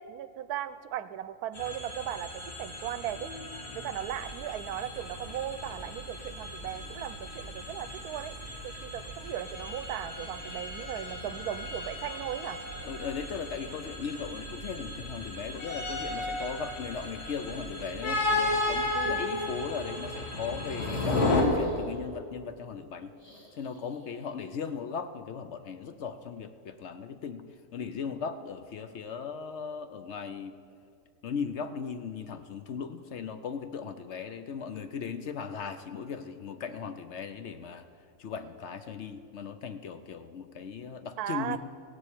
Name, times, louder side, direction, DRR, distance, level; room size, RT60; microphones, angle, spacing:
voice 1, 0.0-3.3 3.7-8.4 8.6-12.6 18.9-19.2 41.2-41.6, right 11 dB, 85° right, 13 dB, 1.1 m, -37 dB
sound 1, 1.5-21.4, left 2 dB, 75° left, 2.2 m, -35 dB
Creepy Ambience Background, 4.0-18.9, right 3 dB, 30° right, 2.1 m, -49 dB
voice 2, 12.8-23.1 23.6-27.5 27.7-30.6 31.2-37.9 38.2-41.6, left 6 dB, 60° left, 10 dB, 0.8 m, -38 dB
sound 2, 20.6-22.0 23.1-24.3 24.6-24.7 26.3-26.4, left 1 dB, 25° left, 2.1 m, -50 dB
16.5 x 7.4 x 8.4 m, 2.4 s
omnidirectional pair, 1.6 m